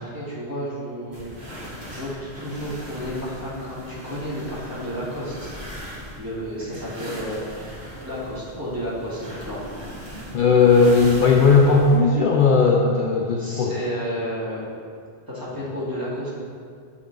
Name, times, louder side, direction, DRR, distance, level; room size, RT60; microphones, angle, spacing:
voice 1, 0.0-5.5 6.2-7.4 8.0-9.6 10.0-10.4 13.4-14.7 15.3-16.3, equal, 20° right, -8 dB, 1.8 m, -32 dB
sound 1, 1.1-12.0, equal, 85° right, 2.0 m, -38 dB
voice 2, 10.3-13.7, left 4 dB, 60° left, -1 dB, 0.7 m, -17 dB
6.3 x 6.0 x 3.8 m, 2.2 s
omnidirectional pair, 1.1 m